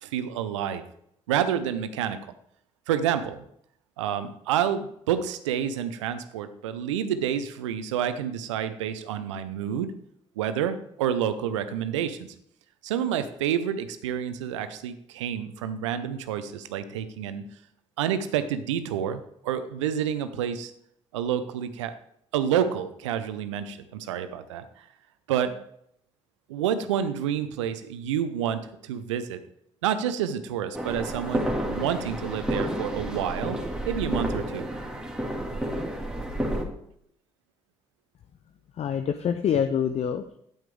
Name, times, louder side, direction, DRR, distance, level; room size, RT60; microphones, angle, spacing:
voice 1, 0.0-0.8 1.3-2.2 2.9-3.4 4.0-9.9 10.4-12.3 12.8-17.4 18.0-20.7 21.1-21.9 22.3-24.8 25.3-25.5 26.5-29.4 29.8-33.6 33.8-34.7, right 9 dB, 75° right, 11 dB, 0.6 m, -29 dB
sound 1, 30.7-36.6, equal, 5° right, 2.0 m, -30 dB
voice 2, 38.8-40.4, left 8 dB, 45° left, 9 dB, 0.6 m, -26 dB
8.9 x 8.9 x 3.5 m, 0.71 s
figure-of-eight pair, 40°, 16 cm